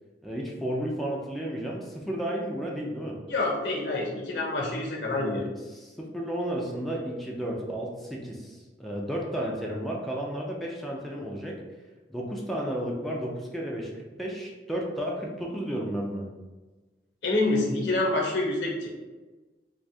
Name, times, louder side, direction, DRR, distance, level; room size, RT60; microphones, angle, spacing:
voice 1, 0.2-3.2 5.1-11.6 12.1-16.3, right 1 dB, ahead, -3 dB, 0.4 m, -33 dB
voice 2, 3.3-5.4 17.2-18.9, left 2 dB, 80° left, -1 dB, 0.8 m, -27 dB
2.6 x 2.3 x 4.0 m, 1.2 s
head